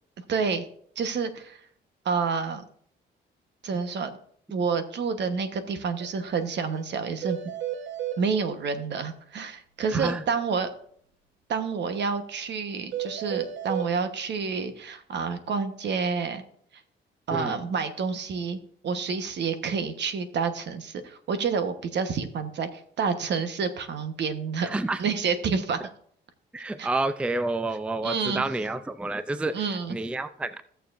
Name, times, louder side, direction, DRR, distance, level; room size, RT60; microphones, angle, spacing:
voice 1, 0.2-0.6 1.0-1.6 2.0-2.6 3.6-4.2 4.5-7.4 8.2-10.7 11.5-16.4 17.3-25.8 26.8-26.9 28.0-28.4 29.5-30.0, right 5 dB, 60° right, 9 dB, 1.2 m, -29 dB
sound 1, 6.0-6.1 6.3-6.5 6.7-6.8 7.2-8.2 12.9-13.9, right 11 dB, 85° right, 1.1 m, -32 dB
voice 2, 9.9-10.2 17.3-17.6 24.6-25.0 26.5-29.6 29.9-30.6, right 2 dB, 5° right, 12 dB, 0.4 m, -29 dB
16.5 x 6.8 x 2.5 m, 0.62 s
cardioid pair, 90°, 20 cm